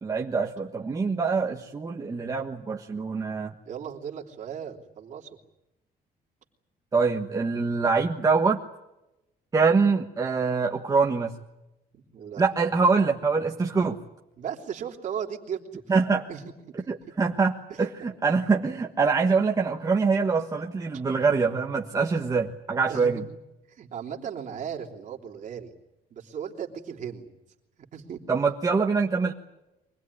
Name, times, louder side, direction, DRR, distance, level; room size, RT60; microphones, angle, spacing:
voice 1, 0.0-3.5 6.9-8.6 9.5-11.3 12.4-14.0 15.9-16.2 16.9-23.2 28.3-29.3, right 4 dB, 20° right, 1 dB, 1.4 m, -24 dB
voice 2, 3.6-5.4 11.9-12.4 14.4-15.8 16.3-16.4 16.8-16.9 17.7-17.9 22.9-23.2 23.7-25.7 26.1-27.3 27.9-28.2, right 8 dB, 50° right, 1 dB, 3.2 m, -36 dB
24.5 x 19.5 x 9.7 m, 0.94 s
cardioid pair, 155°, 17 cm